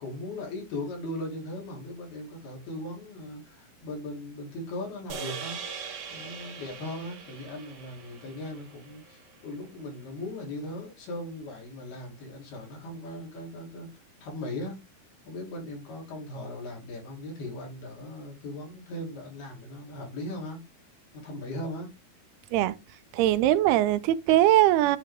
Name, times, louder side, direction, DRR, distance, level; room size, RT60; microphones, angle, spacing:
voice 1, 0.0-5.6 6.1-14.8 15.3-20.6 21.1-21.9, left 1 dB, 75° left, 5.2 m, -38 dB
sound 1, 5.1-9.5, right 6 dB, 50° right, 2.3 m, -41 dB
voice 2, 23.1-25.0, right 14 dB, 85° right, 2.7 m, -21 dB
9.7 x 4.7 x 3.6 m
omnidirectional pair, 4.5 m